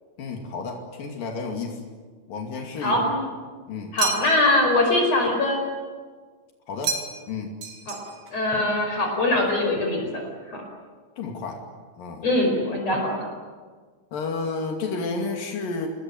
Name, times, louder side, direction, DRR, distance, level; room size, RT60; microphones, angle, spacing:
voice 1, 0.2-1.8 2.3-3.1 3.7-4.0 6.7-7.6 11.2-11.6 12.0-12.3 14.1-15.9, left 4 dB, 85° left, 2 dB, 4.3 m, -31 dB
voice 2, 2.8-3.2 3.9-5.6 7.9-8.0 8.3-10.2 10.5-10.6 12.2-13.2, left 2 dB, 50° left, 2 dB, 6.2 m, -22 dB
sound 1, 4.0-4.6 6.8-7.3 7.6-8.4, right 5 dB, 85° right, 4.4 m, -30 dB
28.5 x 21.0 x 9.3 m, 1.5 s
omnidirectional pair, 3.9 m